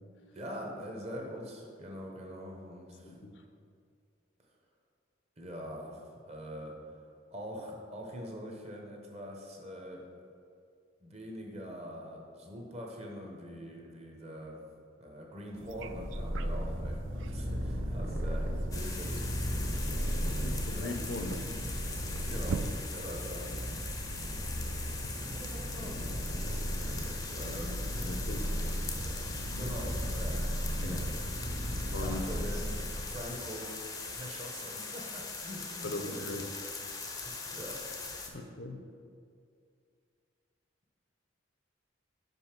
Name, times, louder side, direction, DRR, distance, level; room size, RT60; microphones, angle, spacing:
voice 1, 0.3-3.3 5.4-6.8 7.3-10.1 11.0-14.7 15.0-19.3 20.7-20.9 22.2-23.5 24.8-26.2 26.6-27.8 28.4-31.4 31.6-32.8 33.1-36.4 37.2-37.8, equal, 35° right, 0 dB, 0.9 m, -44 dB
voice 2, 3.0-3.4 20.4-21.5 27.4-27.6 28.1-28.5 30.8-31.0 31.9-32.2 35.8-36.5 38.3-38.8, left 2 dB, 70° left, 5 dB, 0.6 m, -39 dB
sound 1, 15.5-22.7, right 5 dB, 85° right, 0.3 m, -45 dB
Purr, 15.6-33.3, equal, 55° right, 1.2 m, -35 dB
sound 2, 18.7-38.3, left 4 dB, 20° left, 0.6 m, -41 dB
5.4 x 5.2 x 5.9 m, 2.3 s
head